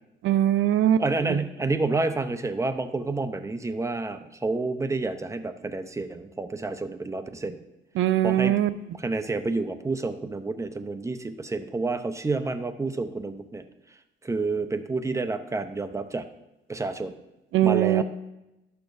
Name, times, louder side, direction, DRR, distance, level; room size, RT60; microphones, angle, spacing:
voice 1, 0.2-1.0 1.3-1.4 8.0-8.7 17.5-18.0, right 12 dB, 80° right, 14 dB, 0.5 m, -21 dB
voice 2, 1.0-7.6 8.2-8.6 9.0-13.7 14.2-16.3 16.7-17.2 17.6-18.0, right 3 dB, 15° right, 9 dB, 0.6 m, -29 dB
11.5 x 6.7 x 2.6 m, 0.94 s
cardioid pair, 90°, 20 cm